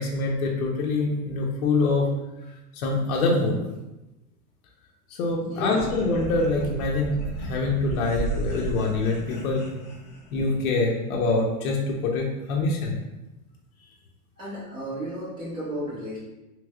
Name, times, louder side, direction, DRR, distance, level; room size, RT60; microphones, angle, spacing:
voice 1, 0.0-2.1 2.7-3.6 5.2-7.1 7.4-9.8 10.3-13.0, left 3 dB, 65° left, -1 dB, 0.7 m, -25 dB
voice 2, 5.5-5.9 14.4-16.2, equal, 10° right, -8 dB, 0.7 m, -33 dB
sound 1, 5.8-10.5, right 2 dB, 25° left, 0.6 m, -34 dB
3.2 x 3.1 x 2.3 m, 0.99 s
supercardioid pair, 160°, 45 cm